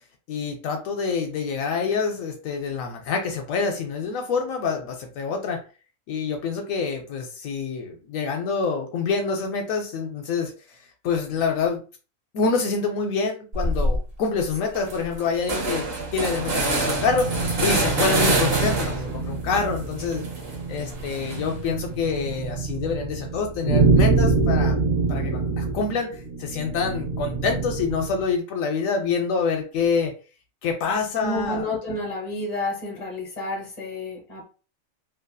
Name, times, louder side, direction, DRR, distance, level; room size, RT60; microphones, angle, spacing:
voice 1, 0.3-5.6 6.1-10.8 11.0-11.8 12.3-20.2 20.7-24.8 25.1-30.1 30.6-31.7, left 5 dB, 80° left, 3 dB, 1.0 m, -26 dB
sound 1, 13.5-14.0 14.4-14.5 14.7-19.2 19.5-21.7, right 2 dB, 50° right, 0.9 m, -26 dB
sound 2, 15.6-28.2, right 4 dB, 75° right, 1.2 m, -26 dB
voice 2, 31.2-34.4, left 1 dB, 30° left, -1 dB, 1.1 m, -30 dB
2.9 x 2.5 x 2.2 m, 0.35 s
omnidirectional pair, 1.4 m